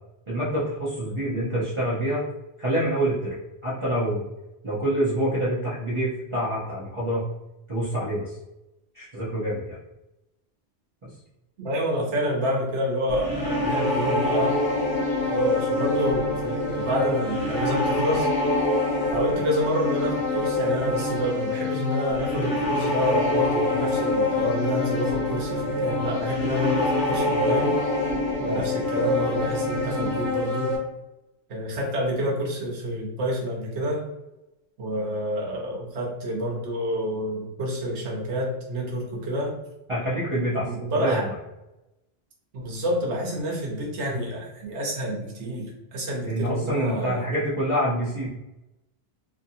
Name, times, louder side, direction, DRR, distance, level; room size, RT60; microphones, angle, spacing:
voice 1, 0.3-2.2 2.6-3.4 3.6-4.2 4.6-7.2 7.7-8.4 8.9-9.8 11.0-11.1 28.5-29.0 39.9-40.7 40.9-41.3 46.2-48.3, right 1 dB, 30° right, -11 dB, 0.7 m, -26 dB
voice 2, 11.6-14.6 15.3-18.3 19.1-27.8 28.4-30.8 31.5-34.0 34.8-39.6 40.6-41.3 42.5-47.2, equal, 80° right, -2 dB, 1.1 m, -28 dB
sound 1, 13.1-30.8, left 2 dB, 70° left, 1.3 m, -25 dB
2.8 x 2.7 x 2.7 m, 0.96 s
omnidirectional pair, 1.1 m